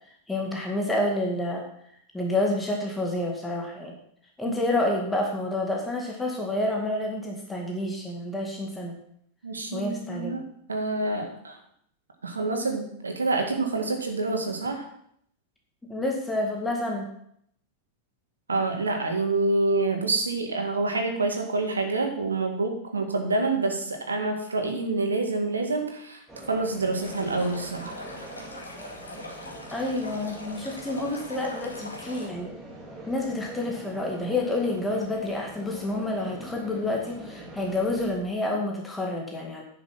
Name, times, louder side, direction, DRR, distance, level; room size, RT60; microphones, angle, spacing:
voice 1, 0.3-1.7 2.1-4.0 4.4-9.0 9.7-10.4 15.9-17.1 29.7-32.5 33.1-39.6, left 1 dB, 10° left, -1 dB, 2.1 m, -29 dB
voice 2, 9.4-11.6 12.2-14.9 18.5-26.2 26.5-28.0, right 3 dB, 75° right, 4 dB, 1.9 m, -27 dB
sound 1, 26.3-38.2, right 1 dB, 10° right, 3.5 m, -43 dB
Stream, 27.0-32.3, left 1 dB, 80° left, 2.1 m, -42 dB
10.5 x 6.8 x 6.0 m, 0.69 s
figure-of-eight pair, 90°, 0 cm